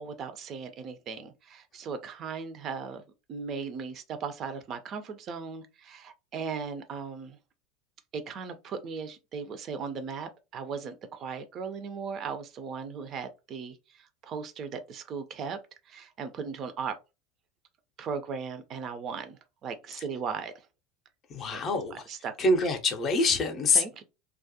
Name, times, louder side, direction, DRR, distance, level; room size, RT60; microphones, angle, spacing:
voice 1, 0.0-3.0 3.3-7.4 8.1-15.6 15.9-17.0 18.0-20.7 21.5-21.6 22.1-22.3 23.7-24.0, right 5 dB, 40° right, 0.4 m, -37 dB
voice 2, 21.3-22.0 22.4-23.8, left 2 dB, 35° left, 0.5 m, -25 dB
2.3 x 2.0 x 2.7 m
figure-of-eight pair, 75°, 0 cm